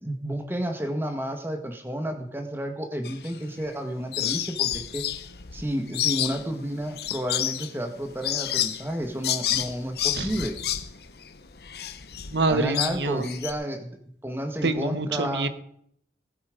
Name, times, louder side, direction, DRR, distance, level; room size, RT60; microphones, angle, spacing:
voice 1, 0.0-5.0 5.5-10.5 12.5-14.0 14.2-15.5, right 1 dB, 15° right, 6 dB, 1.6 m, -31 dB
sound 1, 3.0-3.8 4.1-13.5, left 12 dB, 65° left, 0.9 m, -30 dB
voice 2, 12.3-13.2 14.6-15.5, right 2 dB, 80° right, 11 dB, 1.1 m, -26 dB
19.0 x 8.5 x 5.2 m, 0.68 s
head